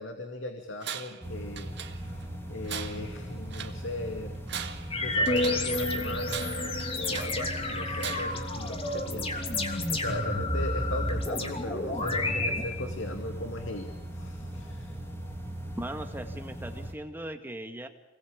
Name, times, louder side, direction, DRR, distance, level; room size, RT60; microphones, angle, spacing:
voice 1, 0.0-2.2 2.5-4.4 4.9-9.6 9.9-14.9, left 1 dB, 75° left, 5 dB, 2.4 m, -38 dB
Tools, 0.8-1.3 1.6-2.3 2.7-3.8 4.3-5.7 6.3-7.4 8.0-8.5, right 8 dB, 65° right, 2.0 m, -40 dB
sound 1, 1.2-16.9, right 1 dB, 15° left, 3.4 m, -39 dB
sound 2, 4.9-12.6, left 1 dB, 30° left, 3.0 m, -30 dB
voice 2, 15.8-17.9, right 1 dB, 10° right, 6 dB, 1.9 m, -38 dB
28.0 x 20.5 x 8.8 m, 0.99 s
head